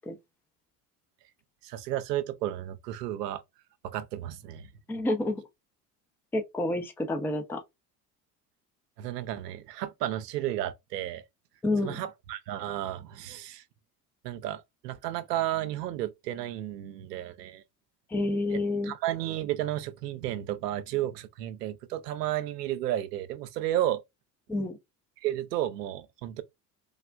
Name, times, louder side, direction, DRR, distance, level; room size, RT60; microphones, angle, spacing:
voice 1, 1.6-3.4 3.8-4.7 9.0-11.2 11.8-13.6 14.2-17.6 18.8-24.0 25.2-26.4, right 13 dB, 80° right, 0.6 m, -32 dB
voice 2, 4.9-5.4 6.3-7.6 11.6-12.0 18.1-18.9 24.5-24.8, left 2 dB, 5° left, 0.4 m, -29 dB
3.4 x 2.1 x 2.4 m
hypercardioid pair, 65°, 48 cm